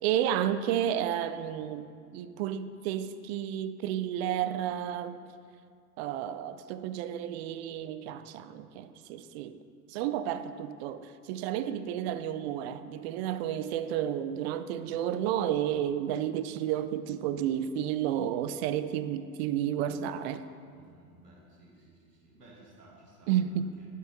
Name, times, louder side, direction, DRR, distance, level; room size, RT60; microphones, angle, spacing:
voice 1, 0.0-5.2 6.0-9.6 9.9-20.4 23.3-23.7, right 10 dB, 45° right, 12 dB, 0.5 m, -31 dB
voice 2, 20.7-23.9, right 1 dB, 80° right, -3 dB, 1.8 m, -57 dB
9.2 x 7.8 x 3.8 m, 2.2 s
figure-of-eight pair, 80°, 47 cm